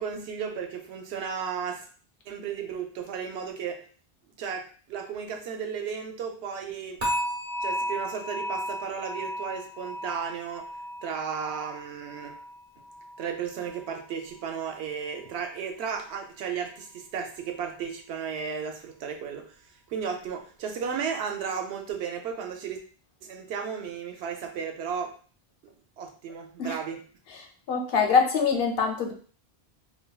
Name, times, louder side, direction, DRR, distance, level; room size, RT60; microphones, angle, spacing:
voice 1, 0.0-1.8 2.3-3.8 4.4-7.1 7.6-10.7 11.0-12.4 13.2-19.5 19.9-22.8 23.3-25.1 25.6-27.0, right 7 dB, 85° right, 4 dB, 0.8 m, -34 dB
sound 1, 7.0-14.1 14.4-14.8 15.3-15.4, equal, 40° right, 1.0 m, -35 dB
voice 2, 27.3-29.1, left 5 dB, 70° left, 2 dB, 0.8 m, -24 dB
3.3 x 2.2 x 2.2 m, 0.42 s
omnidirectional pair, 1.1 m